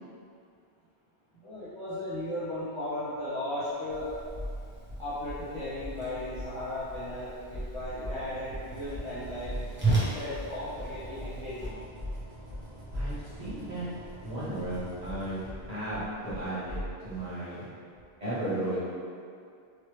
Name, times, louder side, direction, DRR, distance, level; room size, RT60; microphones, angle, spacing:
voice 1, 1.3-4.1 5.0-9.6 10.0-11.8, left 1 dB, 35° left, -13 dB, 0.7 m, -36 dB
Whoosh swoosh swish, 3.9-11.7, right 3 dB, 15° right, 0.5 m, -36 dB
sound 1, 4.2-4.6 4.9-6.0 6.3-6.6 6.9-13.7 14.0-14.1 14.6-16.9, equal, 75° right, 1.2 m, -39 dB
sound 2, 8.3-16.3, right 1 dB, 60° right, 0.9 m, -48 dB
voice 2, 12.9-13.8 14.2-16.8 17.0-17.6 18.2-18.8, right 1 dB, 40° right, -13 dB, 1.1 m, -35 dB
3.2 x 2.1 x 3.1 m, 2.3 s
omnidirectional pair, 1.1 m